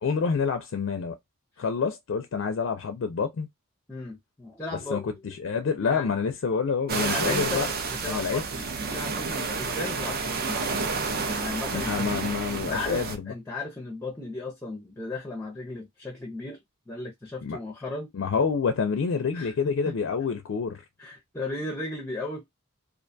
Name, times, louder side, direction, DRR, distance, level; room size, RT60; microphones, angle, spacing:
voice 1, 0.0-1.2 1.6-3.5 4.9-7.7 8.1-8.4 11.7-13.3 17.4-17.6 18.1-20.8, left 5 dB, 65° left, 0.4 m, -27 dB
voice 2, 3.9-5.1 5.8-6.1 7.0-8.7 8.9-10.8 11.2-12.1 12.7-16.6 16.9-18.1 19.3-19.9 21.0-22.5, left 2 dB, 10° left, 0.5 m, -36 dB
sound 1, 6.9-13.2, right 4 dB, 45° right, 0.5 m, -30 dB
2.4 x 2.2 x 2.5 m
head